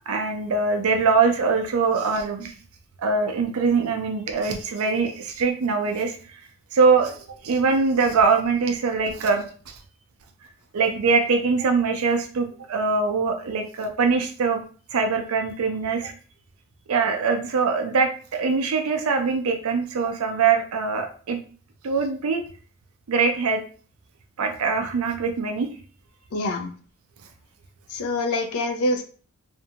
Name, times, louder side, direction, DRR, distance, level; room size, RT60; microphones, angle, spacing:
voice 1, 0.1-2.5 3.0-6.4 6.7-9.8 10.7-14.6 14.9-16.1 16.9-21.4 21.8-22.4 23.1-23.6 24.4-25.7, right 4 dB, 75° right, 4 dB, 0.4 m, -23 dB
voice 2, 26.3-26.7 27.9-29.0, left 2 dB, 80° left, 5 dB, 0.4 m, -25 dB
2.5 x 2.2 x 2.8 m, 0.41 s
head